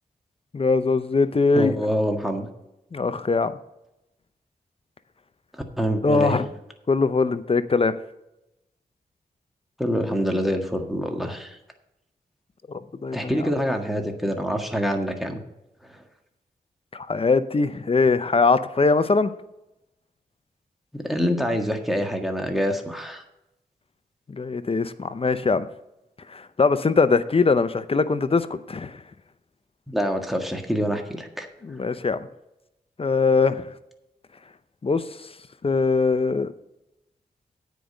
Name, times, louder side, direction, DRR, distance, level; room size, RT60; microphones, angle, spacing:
voice 1, 0.5-1.8 2.9-3.5 6.0-6.5 6.9-7.9 12.7-13.3 16.9-19.3 24.3-25.7 26.3-29.0 31.6-32.3 33.0-33.7 34.8-35.0 35.6-36.5, left 4 dB, 35° left, 13 dB, 0.7 m, -21 dB
voice 2, 1.5-2.5 5.8-6.4 9.8-11.6 13.1-15.4 15.9-16.0 20.9-23.2 29.9-31.5, equal, ahead, 3 dB, 1.7 m, -26 dB
9.3 x 5.1 x 7.8 m, 0.88 s
cardioid pair, 60°, 16 cm